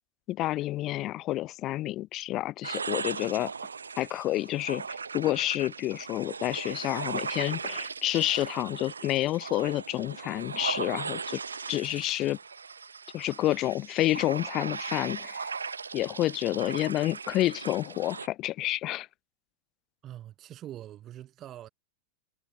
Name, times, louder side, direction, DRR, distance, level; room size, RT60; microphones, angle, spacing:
voice 1, 0.3-3.5 4.0-4.8 5.1-11.4 11.7-12.4 13.1-15.5 15.9-19.1, left 15 dB, 35° left, 0.3 m, -29 dB
sound 1, 2.6-18.3, right 5 dB, 75° right, 0.9 m, -38 dB
voice 2, 20.0-21.7, right 12 dB, 30° right, 0.9 m, -44 dB
figure-of-eight pair, 90°, 0 cm